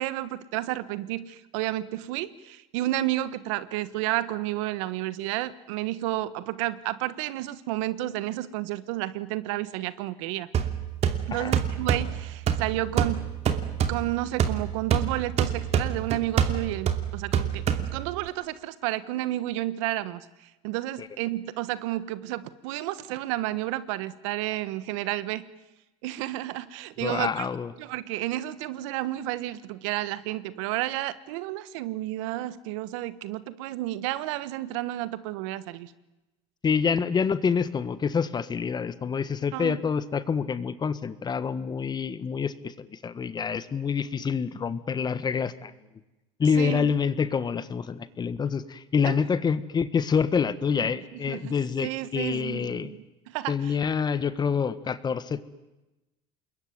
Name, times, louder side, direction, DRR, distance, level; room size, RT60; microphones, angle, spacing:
voice 1, 0.0-10.5 11.3-13.2 13.9-25.4 26.0-27.5 27.8-35.9 39.5-39.8 46.5-46.9 49.0-49.2 50.8-50.9 51.3-51.5 51.8-53.8, right 15 dB, 80° right, 16 dB, 1.3 m, -31 dB
sound 1, 10.5-18.3, right 8 dB, 45° right, 2.8 m, -27 dB
voice 2, 27.0-27.7 36.6-45.7 46.4-52.9 53.5-55.4, left 6 dB, 25° left, 15 dB, 1.5 m, -27 dB
27.0 x 22.0 x 9.6 m, 1.0 s
supercardioid pair, 110°, 16 cm